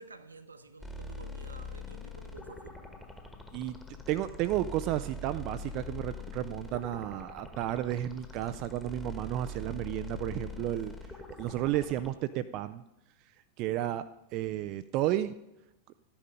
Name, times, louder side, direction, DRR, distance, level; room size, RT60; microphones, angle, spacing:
voice 1, 0.0-2.9, right 3 dB, 80° right, 10 dB, 0.9 m, -51 dB
sound 1, 0.8-12.1, left 2 dB, 10° left, 1.5 m, -43 dB
voice 2, 4.1-10.9 11.4-12.8 13.6-14.0 14.3-15.3, right 13 dB, 40° right, 10 dB, 0.4 m, -32 dB
12.5 x 10.0 x 5.1 m, 0.91 s
figure-of-eight pair, 90°, 0 cm